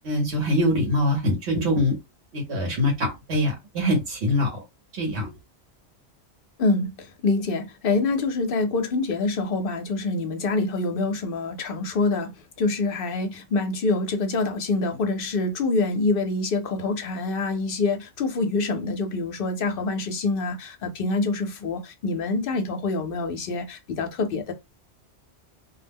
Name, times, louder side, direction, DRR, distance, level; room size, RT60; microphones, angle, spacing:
voice 1, 0.0-2.0 2.3-4.6 4.9-5.3, left 1 dB, 75° right, 1.1 m, -23 dB
voice 2, 6.6-24.5, left 3 dB, 60° left, 0.7 m, -26 dB
2.3 x 2.0 x 3.3 m
omnidirectional pair, 1.1 m